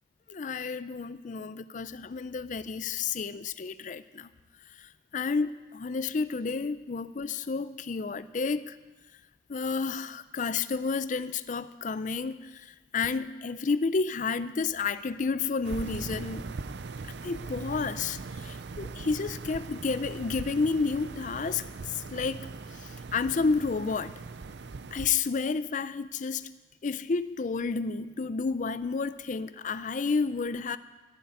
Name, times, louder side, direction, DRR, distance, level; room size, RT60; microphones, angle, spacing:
voice 1, 0.3-4.3 4.8-8.8 9.5-16.5 17.0-24.1 24.9-26.5 26.8-30.8, left 4 dB, 45° left, 14 dB, 0.4 m, -31 dB
sound 1, 15.6-25.1, right 4 dB, 70° right, 0.5 m, -40 dB
15.0 x 7.7 x 9.2 m, 1.2 s
head